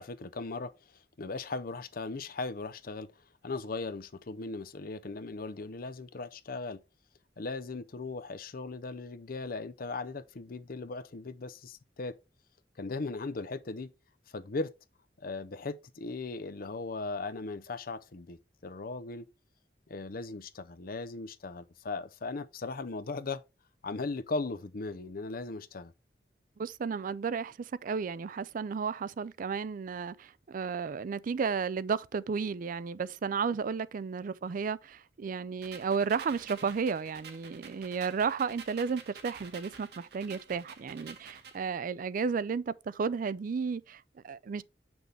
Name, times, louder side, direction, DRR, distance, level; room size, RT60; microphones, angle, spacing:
voice 1, 0.0-3.1 3.4-6.8 7.4-12.2 12.8-13.9 14.3-14.7 15.2-19.3 19.9-23.4 23.8-25.9, left 3 dB, 55° left, 0.6 m, -38 dB
voice 2, 26.6-44.6, right 5 dB, 50° right, 0.4 m, -33 dB
sound 1, 35.6-41.6, right 6 dB, 65° right, 1.4 m, -49 dB
7.1 x 6.1 x 3.4 m
head